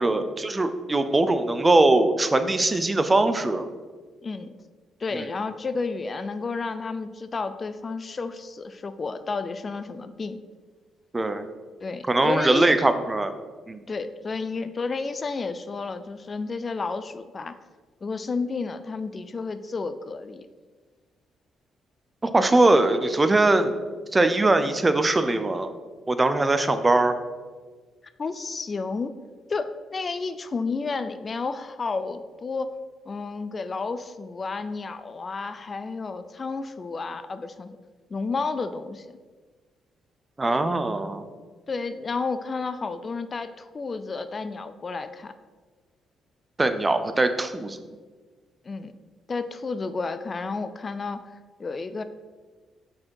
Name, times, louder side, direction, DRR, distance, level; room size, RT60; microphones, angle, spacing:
voice 1, 0.0-3.7 5.1-5.3 11.1-11.4 12.1-13.3 13.7-13.8 22.2-23.7 24.1-25.7 26.1-27.1 40.4-41.2 46.6-47.8, right 2 dB, 20° right, 10 dB, 0.5 m, -21 dB
voice 2, 4.2-4.5 5.0-10.4 11.8-12.9 13.9-17.6 18.0-20.5 22.5-22.7 28.2-29.1 29.5-32.8 33.1-37.8 38.1-39.1 40.5-40.6 41.7-45.3 48.6-48.9 49.3-51.3 51.6-52.0, left 4 dB, 35° left, 11 dB, 0.3 m, -31 dB
6.1 x 4.3 x 4.7 m, 1.4 s
cardioid pair, 90°, 0 cm